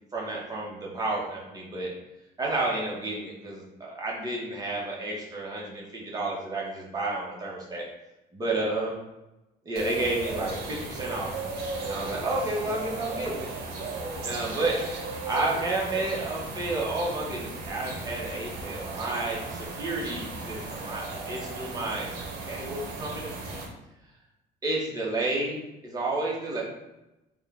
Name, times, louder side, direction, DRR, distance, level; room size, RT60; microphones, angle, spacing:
voice 1, 0.1-1.9 2.4-7.9 8.3-9.0 9.6-11.3 11.8-13.5 14.2-14.8 15.2-22.1 22.5-23.3 24.6-25.6 25.8-26.6, right 2 dB, 20° right, -4 dB, 1.1 m, -31 dB
sound 1, 9.8-23.7, right 3 dB, 75° right, 0.8 m, -36 dB
3.6 x 2.3 x 3.5 m, 0.96 s
cardioid pair, 110°, 17 cm